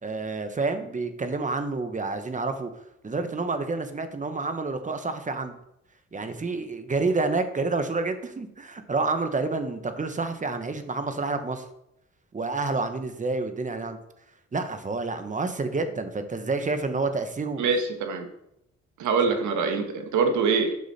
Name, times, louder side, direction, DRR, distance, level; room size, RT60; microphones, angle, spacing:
voice 1, 0.0-2.7 3.0-5.6 6.1-11.6 12.3-14.0 14.5-17.6, right 3 dB, 25° right, 8 dB, 1.1 m, -29 dB
voice 2, 17.6-18.3 19.0-20.7, right 5 dB, 75° right, 5 dB, 1.5 m, -24 dB
8.5 x 6.1 x 4.2 m, 0.80 s
cardioid pair, 90°, 30 cm